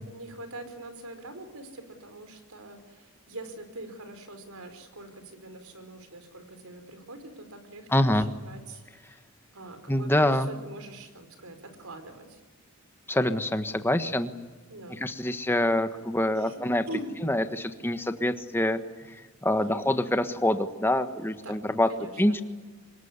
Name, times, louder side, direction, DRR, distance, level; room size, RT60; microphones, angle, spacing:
voice 1, 0.0-9.2 9.5-12.4 14.7-15.0 15.6-15.7 16.4-16.6 16.9-17.1 19.6-19.9 21.4-21.6 21.9-22.4, right 1 dB, 80° right, 8 dB, 4.7 m, -43 dB
voice 2, 7.9-8.3 9.9-10.5 13.1-14.3 14.9-16.8 17.2-18.8 19.4-21.9 22.2-22.4, left 1 dB, 10° left, 9 dB, 1.4 m, -25 dB
25.0 x 22.0 x 9.7 m, 1.3 s
head